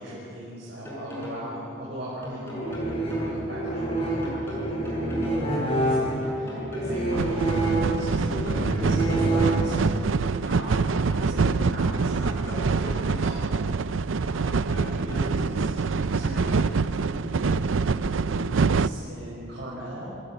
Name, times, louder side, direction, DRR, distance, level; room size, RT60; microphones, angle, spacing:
voice 1, 0.0-15.7 16.0-16.5 16.9-20.1, equal, 60° right, -6 dB, 5.9 m, -39 dB
sound 1, 0.6-1.4 2.2-3.3 4.0-5.4 6.2-7.3 8.0-9.4 10.2-11.3 12.0-13.4 14.2-15.3 16.0-16.6, left 1 dB, 15° left, 6.5 m, -39 dB
sound 2, 2.5-10.0, right 1 dB, 30° left, 7.7 m, -27 dB
sound 3, 7.1-18.9, right 4 dB, 85° right, 0.5 m, -25 dB
26.5 x 19.5 x 9.2 m, 2.8 s
head